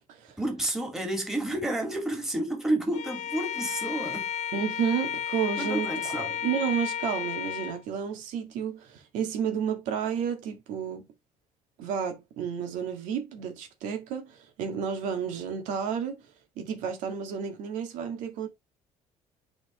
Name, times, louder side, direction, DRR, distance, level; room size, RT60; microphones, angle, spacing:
voice 1, 0.4-4.3 5.6-6.3, right 1 dB, 5° right, 2.3 m, -30 dB
Bowed string instrument, 2.9-7.8, left 9 dB, 65° left, 0.7 m, -33 dB
voice 2, 4.5-11.1 11.8-16.2 16.6-18.5, right 7 dB, 90° right, 1.9 m, -31 dB
8.0 x 4.4 x 3.1 m
cardioid pair, 155°, 13 cm